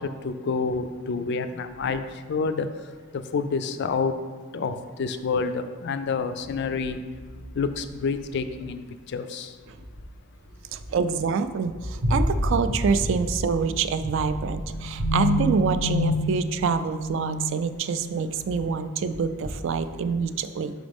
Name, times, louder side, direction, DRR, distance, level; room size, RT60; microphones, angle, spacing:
voice 1, 0.0-4.1 4.5-7.0 7.5-9.6, left 4 dB, 50° left, 10 dB, 0.3 m, -28 dB
sound 1, 6.4-8.7 9.8-10.1 10.5-11.3 11.7-18.8 19.0-20.2, left 1 dB, 85° right, 1.1 m, -30 dB
voice 2, 10.7-20.7, right 5 dB, 60° right, 10 dB, 0.3 m, -26 dB
6.0 x 5.0 x 3.5 m, 1.5 s
head